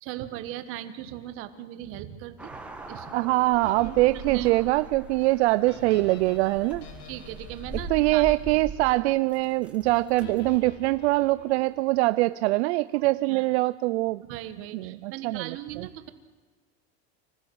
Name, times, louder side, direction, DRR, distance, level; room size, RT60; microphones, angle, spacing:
voice 1, 0.0-2.6 2.9-3.3 3.8-4.0 4.2-4.6 5.5-5.6 7.0-8.3 8.5-8.6 12.9-13.5 14.2-16.1, right 12 dB, 40° right, 10 dB, 1.5 m, -38 dB
sound 1, 2.4-10.6, right 1 dB, 5° right, 1.5 m, -42 dB
voice 2, 3.1-6.8 7.9-14.2 14.7-15.9, right 20 dB, 70° right, 15 dB, 0.5 m, -23 dB
sound 2, 3.6-8.9 10.2-12.1, left 6 dB, 80° left, 4.2 m, -47 dB
25.5 x 15.0 x 8.0 m, 1.4 s
supercardioid pair, 170°, 34 cm